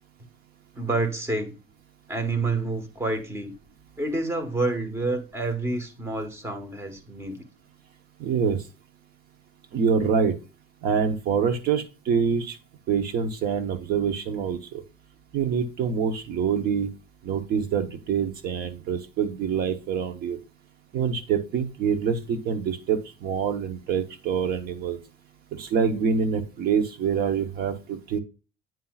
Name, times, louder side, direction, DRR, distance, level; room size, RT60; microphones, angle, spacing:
voice 1, 0.8-1.5 2.1-3.6 4.0-7.4, right 2 dB, 15° right, 1.4 m, -28 dB
voice 2, 8.2-8.6 9.7-10.3 10.8-12.6 12.9-14.8 15.3-16.9 17.2-20.4 20.9-25.0 25.5-28.2, right 6 dB, 55° right, 1.0 m, -25 dB
9.2 x 5.6 x 2.4 m
cardioid pair, 140°, 19 cm